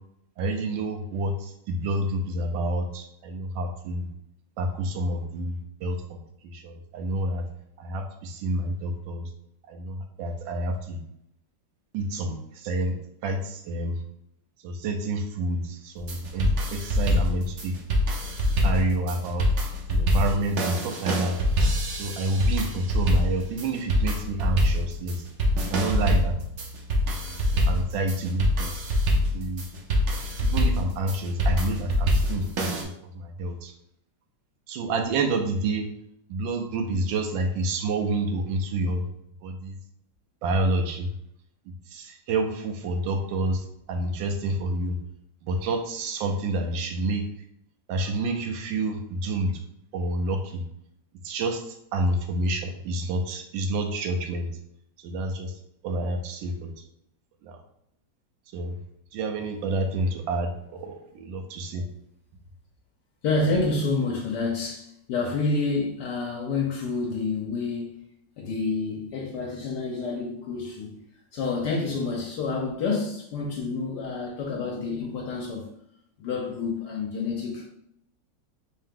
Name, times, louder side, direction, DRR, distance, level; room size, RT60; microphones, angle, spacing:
voice 1, 0.4-4.1 4.6-6.2 6.4-7.4 7.8-9.3 9.7-11.0 11.9-13.0 13.2-14.0 14.6-17.8 18.6-19.5 19.9-21.6 21.9-25.2 25.7-26.4 27.1-28.7 29.3-29.7 30.4-32.9 33.2-33.7 34.7-35.9 36.3-39.0 39.4-39.8 40.4-41.1 41.9-45.0 45.4-47.3 47.9-49.5 49.9-50.6 51.2-51.6 51.9-54.5 55.0-55.5 55.8-56.7 57.4-57.6 58.5-58.8 59.1-61.8, right 2 dB, 85° right, 1.4 m, -28 dB
sound 1, 16.0-32.8, left 1 dB, 65° right, 0.7 m, -25 dB
voice 2, 63.2-68.0 68.4-71.0 71.3-75.7 76.2-77.7, left 3 dB, 75° left, 1.2 m, -28 dB
3.6 x 2.8 x 3.5 m
omnidirectional pair, 2.0 m